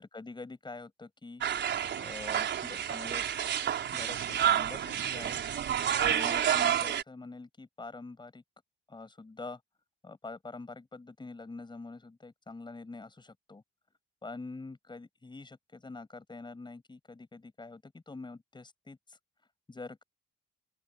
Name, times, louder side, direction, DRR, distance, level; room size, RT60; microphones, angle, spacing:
voice 1, 0.0-1.4 1.9-3.2 3.6-5.4 6.0-8.4 8.9-9.6 10.0-13.6 14.2-19.2 19.7-20.0, left 3 dB, 25° left, 6.9 m, -45 dB
sound 1, 1.4-7.0, right 9 dB, 65° right, 4.6 m, -29 dB
open air
cardioid pair, 90°, 20 cm